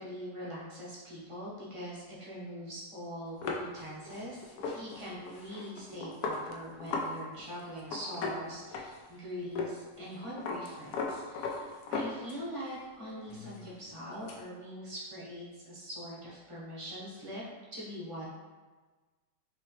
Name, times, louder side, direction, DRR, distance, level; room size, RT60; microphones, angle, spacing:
voice 1, 0.0-17.4 17.7-18.3, equal, 25° right, -7 dB, 0.7 m, -43 dB
sound 1, 3.4-7.1 7.4-7.5 7.8-9.2 9.6-9.7 10.0-12.6 13.0-14.4, left 4 dB, 70° left, 1.0 m, -37 dB
4.1 x 3.1 x 3.0 m, 1.3 s
omnidirectional pair, 2.0 m